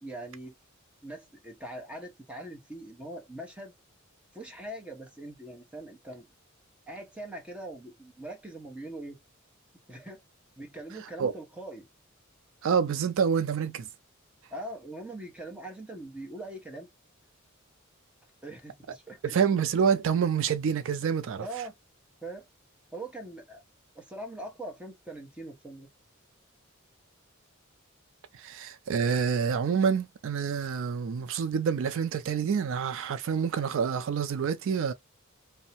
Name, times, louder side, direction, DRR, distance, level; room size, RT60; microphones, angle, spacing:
voice 1, 0.0-0.5 1.0-3.7 4.3-6.3 6.9-9.2 9.9-10.2 10.6-11.9 14.5-16.9 18.4-19.3 21.4-21.7 22.2-22.5 22.9-23.6 23.9-25.9, right 1 dB, 5° right, 0.8 m, -42 dB
voice 2, 12.6-13.9 19.2-21.4 28.3-34.9, right 6 dB, 65° right, 0.3 m, -27 dB
2.6 x 2.1 x 2.8 m
head